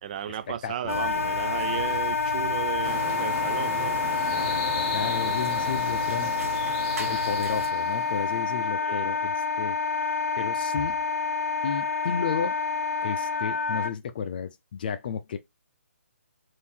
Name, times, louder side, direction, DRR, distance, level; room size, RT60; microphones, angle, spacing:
voice 1, 0.0-4.0 5.3-5.4 5.6-5.7 8.8-9.2, right 9 dB, 30° right, 0.5 m, -35 dB
voice 2, 0.6-1.1 4.3-6.5 7.0-9.8 10.4-11.0 11.6-12.6 13.0-15.4, left 7 dB, 40° left, 0.6 m, -33 dB
Wind instrument woodwind instrument, 0.9-13.9, left 4 dB, 85° left, 0.7 m, -28 dB
sound 1, 0.9-7.7, right 3 dB, 80° right, 0.9 m, -39 dB
sound 2, 2.8-8.7, left 3 dB, 15° left, 0.9 m, -37 dB
3.7 x 2.7 x 4.3 m
hypercardioid pair, 155°, 8 cm